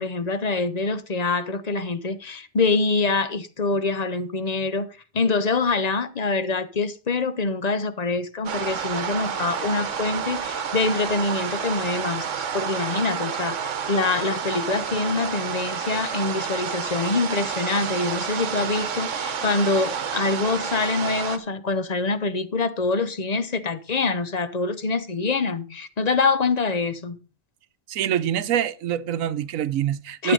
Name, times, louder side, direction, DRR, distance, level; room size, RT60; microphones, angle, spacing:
voice 1, 0.0-4.9 5.1-27.2 30.2-30.3, left 3 dB, 40° left, 0.7 m, -25 dB
sound 1, 8.5-21.4, right 7 dB, 65° right, 1.3 m, -29 dB
voice 2, 27.9-30.3, right 10 dB, 80° right, 1.1 m, -25 dB
12.0 x 7.9 x 3.9 m
omnidirectional pair, 1.4 m